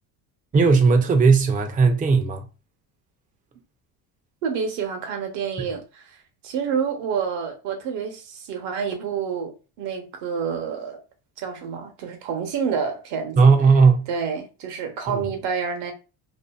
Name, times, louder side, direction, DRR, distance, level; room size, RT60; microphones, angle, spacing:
voice 1, 0.5-2.5 5.6-5.7 13.4-14.1 15.1-15.3, right 4 dB, 20° right, 0.5 m, -17 dB
voice 2, 4.4-6.2 6.4-11.0 11.4-13.5 14.1-15.9, right 6 dB, 70° right, 0.9 m, -28 dB
2.6 x 2.4 x 2.3 m
supercardioid pair, 85°, 46 cm